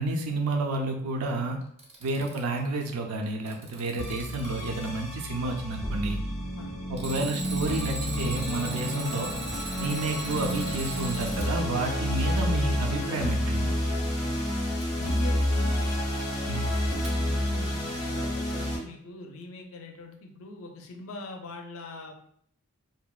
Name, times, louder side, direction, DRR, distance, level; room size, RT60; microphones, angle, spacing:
voice 1, 0.0-1.6 2.0-6.2 6.9-9.3 9.8-13.7 16.5-16.7, right 2 dB, 90° right, 3 dB, 0.4 m, -30 dB
Alarm, 1.6-2.6 3.2-4.6 7.0-11.5 14.8-14.9 17.0-17.1, right 3 dB, 30° right, 0.4 m, -39 dB
sound 1, 4.0-18.8, equal, 20° left, 0.6 m, -29 dB
voice 2, 15.0-16.0 16.9-22.1, left 2 dB, 65° left, 3 dB, 0.4 m, -42 dB
2.7 x 2.1 x 2.3 m, 0.66 s
head